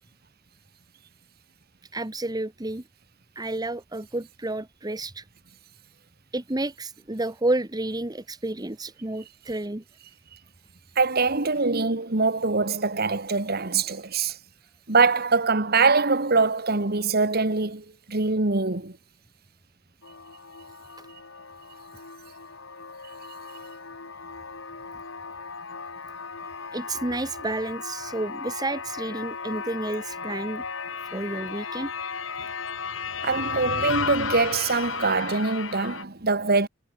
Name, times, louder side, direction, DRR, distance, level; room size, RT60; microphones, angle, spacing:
voice 1, 1.9-2.8 3.3-5.2 6.3-9.8 26.7-30.6 31.1-31.9 32.4-32.5, right 2 dB, 20° right, 1.3 m, -30 dB
voice 2, 11.0-14.4 14.9-19.0 33.2-36.7, right 4 dB, 55° right, 2.0 m, -23 dB
sound 1, 20.0-36.0, left 5 dB, 85° left, 2.4 m, -35 dB
head